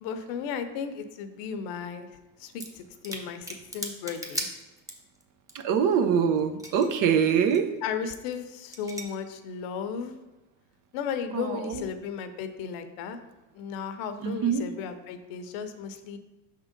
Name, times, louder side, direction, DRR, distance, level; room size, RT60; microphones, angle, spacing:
voice 1, 0.0-2.1 2.4-4.5 7.8-10.1 10.9-13.2 13.5-16.2, left 7 dB, 60° left, 9 dB, 0.8 m, -35 dB
sound 1, 2.5-2.8 3.0-5.2 5.5-5.6 5.8-7.0 7.3-7.6 8.2-8.4 8.7-9.0, equal, 10° right, 0.9 m, -37 dB
voice 2, 5.5-7.7 11.3-11.9 14.2-14.7, right 7 dB, 50° right, 8 dB, 0.7 m, -24 dB
5.8 x 3.7 x 5.1 m, 1.1 s
supercardioid pair, 115°, 41 cm